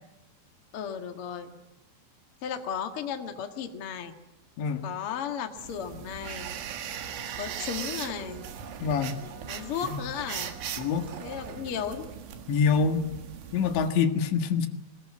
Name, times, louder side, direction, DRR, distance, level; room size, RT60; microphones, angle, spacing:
voice 1, 0.7-1.6 2.4-4.1 4.8-6.5 7.4-8.4 9.5-10.5 11.2-12.1, left 8 dB, 55° left, 6 dB, 1.5 m, -35 dB
sound 1, 5.6-13.9, right 8 dB, 85° right, 4.2 m, -39 dB
Domestic sounds home sounds, 6.4-13.0, right 7 dB, 70° right, 3.8 m, -46 dB
voice 2, 8.8-9.2 9.8-10.0 10.8-11.1 12.5-13.1 13.5-14.7, left 5 dB, 80° left, 7 dB, 4.0 m, -25 dB
22.5 x 21.0 x 8.5 m, 1.0 s
omnidirectional pair, 5.2 m